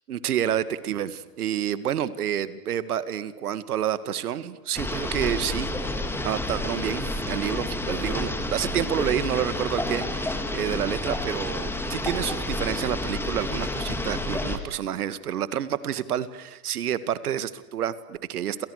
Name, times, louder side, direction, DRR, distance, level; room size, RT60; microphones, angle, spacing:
voice 1, 0.1-5.7 6.2-18.7, right 10 dB, 70° right, 14 dB, 2.2 m, -29 dB
sound 1, 4.7-14.6, left 2 dB, 5° left, 3.0 m, -30 dB
29.0 x 29.0 x 6.7 m, 0.98 s
hypercardioid pair, 125°, 46 cm